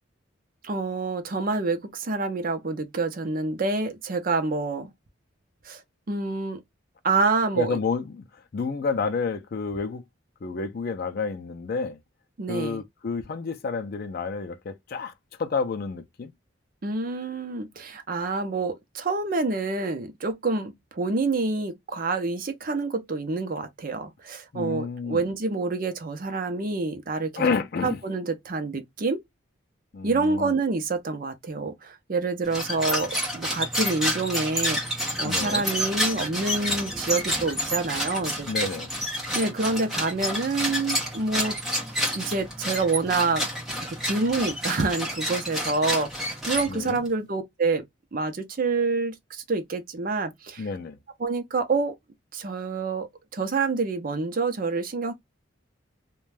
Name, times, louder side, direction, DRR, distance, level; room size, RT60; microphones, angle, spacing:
voice 1, 0.6-4.9 5.6-5.8 6.1-6.6 7.0-7.8 12.4-12.8 16.8-27.4 27.8-29.2 30.0-38.5 39.3-41.5 42.1-43.4 43.7-47.8 48.1-50.7 51.2-52.0 52.3-55.1, right 3 dB, 45° right, 0.6 m, -27 dB
voice 2, 7.6-8.2 8.5-10.0 10.4-12.0 12.5-15.1 15.4-16.3 24.5-25.2 27.4-28.0 29.9-30.6 35.2-35.7 38.5-38.9 46.7-47.0 50.6-51.0, left 4 dB, 50° left, 0.4 m, -29 dB
sound 1, 32.4-47.1, equal, ahead, 0.8 m, -29 dB
2.5 x 2.2 x 3.1 m
head